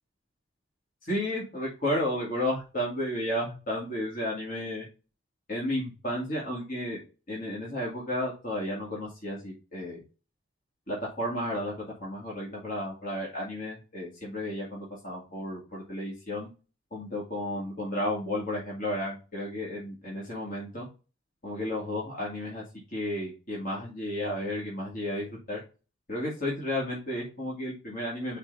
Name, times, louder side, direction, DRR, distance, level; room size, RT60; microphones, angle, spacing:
voice 1, 1.0-4.8 5.5-7.0 7.3-10.0 10.9-11.7 12.0-16.5 16.9-20.9 21.4-22.6 22.9-25.6 26.1-28.4, left 1 dB, 45° left, -5 dB, 2.4 m, -32 dB
5.9 x 4.0 x 5.5 m, 0.32 s
head